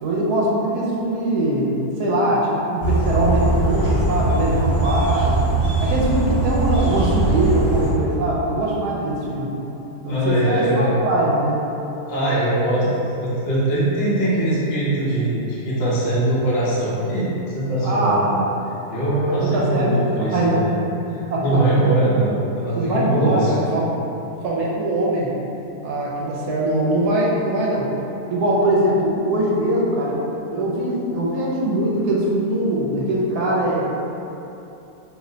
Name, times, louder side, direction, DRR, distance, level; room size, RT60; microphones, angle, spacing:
voice 1, 0.0-5.4 5.8-9.5 10.0-11.6 17.8-18.3 19.5-20.7 21.3-21.9 22.7-23.9 24.4-25.3 25.8-27.9 28.3-33.8, right 1 dB, 75° right, -4 dB, 1.1 m, -22 dB
sound 1, 2.8-7.9, right 2 dB, 25° left, 0.8 m, -20 dB
voice 2, 10.1-10.9 12.1-18.4 18.9-20.7 21.1-23.5, right 1 dB, 50° left, -9 dB, 0.6 m, -21 dB
2.8 x 2.1 x 3.7 m, 2.9 s
omnidirectional pair, 1.7 m